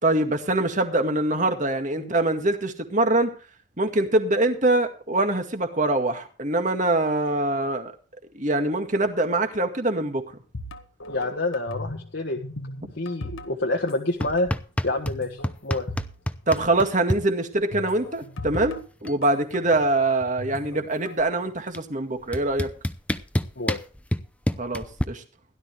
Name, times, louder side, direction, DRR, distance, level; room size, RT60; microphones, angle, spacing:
voice 1, 0.0-3.3 3.8-7.9 8.3-10.2 16.5-22.7 24.6-25.2, right 2 dB, 40° right, 6 dB, 2.0 m, -24 dB
sound 1, 10.5-12.1 12.4-14.0 14.2-14.4 15.0-16.2 16.4-16.5 17.7-19.8 20.4-21.2, left 1 dB, 85° left, 1.8 m, -37 dB
voice 2, 11.1-12.4 13.0-14.5 14.8-15.9 23.6-23.8, left 2 dB, 55° left, 2 dB, 1.5 m, -27 dB
sound 2, 14.2-15.2 15.4-17.2 18.5-18.6 18.8-19.2 19.5-20.9 21.7-21.8 22.3-25.0, left 1 dB, 5° left, 0.6 m, -27 dB
16.5 x 12.0 x 3.3 m, 0.37 s
head